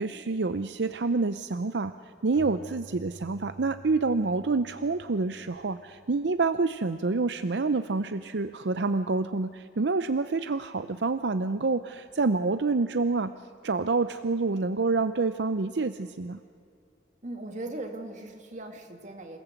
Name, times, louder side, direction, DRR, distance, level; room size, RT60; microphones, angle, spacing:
voice 1, 0.0-1.9 2.2-13.3 13.6-16.4, right 3 dB, 70° right, 11 dB, 0.6 m, -27 dB
Keyboard (musical), 2.3-6.8, right 3 dB, 45° left, 5.9 m, -50 dB
voice 2, 17.2-19.4, right 2 dB, 45° right, 4 dB, 2.3 m, -39 dB
27.5 x 18.5 x 8.2 m, 2.4 s
head